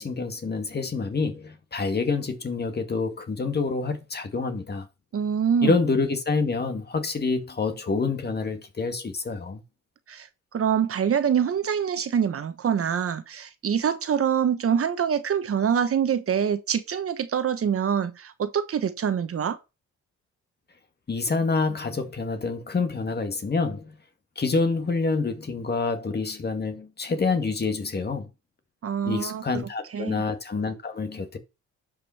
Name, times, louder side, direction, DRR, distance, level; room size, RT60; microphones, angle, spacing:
voice 1, 0.0-4.9 5.6-9.6 21.1-23.9 24.4-28.3 29.1-31.4, left 4 dB, 35° left, 1.9 m, -27 dB
voice 2, 5.1-5.7 10.1-10.3 10.5-19.6 28.8-29.4 29.9-30.2, right 8 dB, 50° right, 1.2 m, -25 dB
11.0 x 5.4 x 4.4 m
cardioid pair, 90°, 30 cm